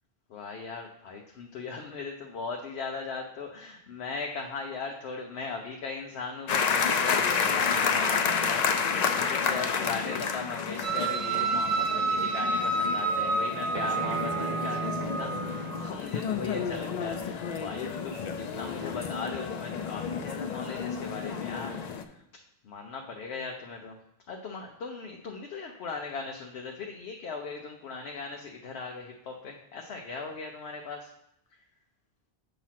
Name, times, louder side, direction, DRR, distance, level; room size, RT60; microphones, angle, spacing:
voice 1, 0.3-22.2 22.6-24.0 24.3-31.1 31.5-31.6, left 4 dB, 85° left, 2 dB, 0.9 m, -38 dB
sound 1, 6.5-22.0, left 6 dB, 55° left, 0.5 m, -30 dB
sound 2, 10.8-15.9, right 3 dB, 50° right, 0.4 m, -29 dB
7.3 x 3.0 x 5.7 m, 0.81 s
omnidirectional pair, 1.0 m